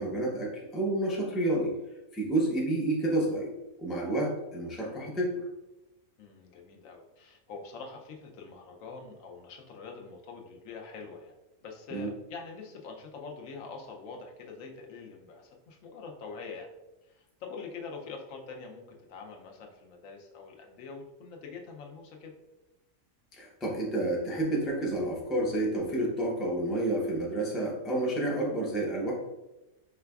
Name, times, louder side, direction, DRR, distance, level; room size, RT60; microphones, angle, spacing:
voice 1, 0.0-1.7 2.1-3.5 3.8-5.3 11.9-12.1 23.4-29.1, right 1 dB, ahead, -3 dB, 0.4 m, -29 dB
voice 2, 6.2-11.3 11.6-16.7 17.0-22.3, left 4 dB, 80° left, 1 dB, 1.0 m, -44 dB
4.8 x 3.4 x 2.3 m, 1.0 s
omnidirectional pair, 1.4 m